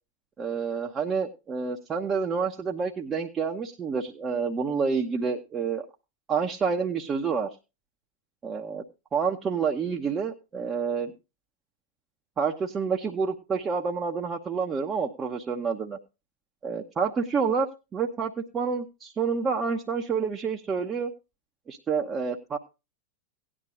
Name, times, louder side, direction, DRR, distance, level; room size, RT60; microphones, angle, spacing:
voice 1, 0.4-5.8 6.3-7.5 8.4-8.8 9.1-11.1 12.4-16.0 16.6-17.7 17.9-21.1 21.7-22.6, right 5 dB, 20° right, 0 dB, 0.9 m, -28 dB
17.5 x 10.0 x 2.5 m, 0.28 s
figure-of-eight pair, 90°, 0 cm